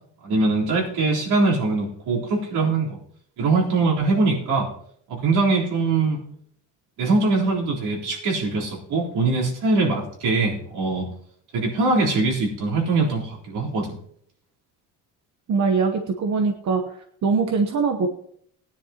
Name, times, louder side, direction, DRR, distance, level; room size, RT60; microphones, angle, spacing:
voice 1, 0.2-3.0 3.4-4.7 5.1-6.2 7.0-11.1 11.5-14.0, right 3 dB, 75° right, -4 dB, 3.9 m, -22 dB
voice 2, 15.5-16.8 17.2-18.1, right 4 dB, 45° right, 5 dB, 1.0 m, -22 dB
19.0 x 10.0 x 2.9 m, 0.64 s
cardioid pair, 160°, 40 cm